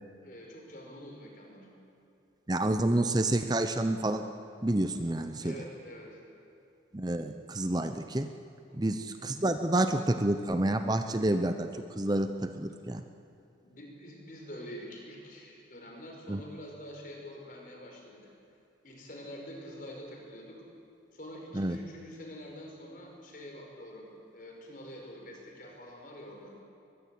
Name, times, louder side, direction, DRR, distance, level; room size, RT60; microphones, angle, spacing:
voice 1, 0.2-1.7 5.4-6.2 8.7-9.0 13.6-18.3 18.8-20.6 21.1-24.1 24.3-26.5, equal, 45° left, 1 dB, 5.5 m, -46 dB
voice 2, 2.5-4.2 4.6-5.6 6.9-8.3 8.7-13.0 16.3-16.4 21.5-21.8, right 1 dB, 20° right, 8 dB, 0.8 m, -29 dB
22.0 x 21.5 x 8.6 m, 2.6 s
head